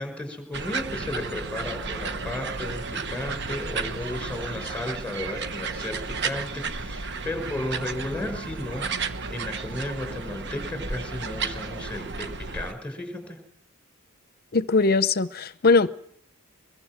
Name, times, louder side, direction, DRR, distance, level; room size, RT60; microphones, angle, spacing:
voice 1, 0.0-13.4, left 1 dB, 5° left, 5.1 m, -34 dB
sound 1, 0.5-12.7, right 4 dB, 55° right, 1.1 m, -33 dB
voice 2, 14.5-16.0, left 3 dB, 45° left, 0.8 m, -21 dB
23.5 x 22.0 x 6.1 m
head